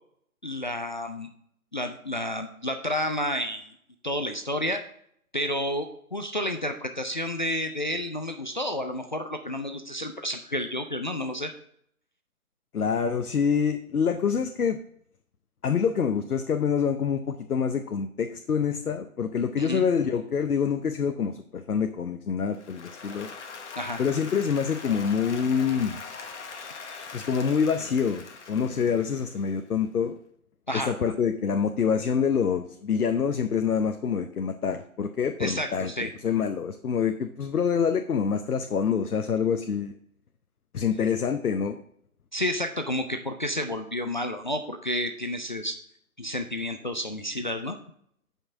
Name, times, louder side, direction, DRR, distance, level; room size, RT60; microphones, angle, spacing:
voice 1, 0.4-1.3 1.7-3.7 4.0-4.8 5.3-11.5 19.6-19.8 23.8-24.0 30.7-30.9 35.4-36.1 42.3-45.8 46.2-47.8, left 1 dB, 35° left, 6 dB, 0.4 m, -30 dB
voice 2, 12.7-14.8 15.6-23.3 24.0-26.0 27.1-30.2 30.7-35.9 36.2-39.9 40.7-41.8, left 6 dB, 85° left, 7 dB, 0.8 m, -26 dB
Applause, 22.5-29.7, left 5 dB, 50° left, 1.3 m, -42 dB
11.5 x 5.6 x 3.6 m, 0.68 s
figure-of-eight pair, 145°, 44 cm